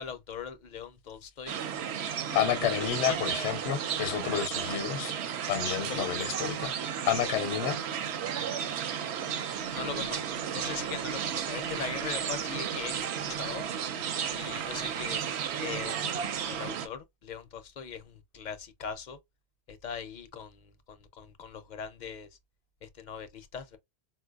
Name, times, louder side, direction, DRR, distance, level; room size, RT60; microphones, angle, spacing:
voice 1, 0.0-1.6 2.3-2.7 3.0-3.3 5.9-6.1 9.7-10.2 10.5-13.0 13.3-13.6 14.3-15.2 15.6-19.2 19.7-22.3 22.8-23.8, left 7 dB, 60° left, 0.5 m, -40 dB
sound 1, 1.5-16.9, right 8 dB, 70° right, 0.8 m, -33 dB
voice 2, 2.3-5.2 5.5-6.7 7.1-7.8, left 10 dB, 80° left, 0.9 m, -30 dB
4.3 x 2.2 x 2.2 m
omnidirectional pair, 1.2 m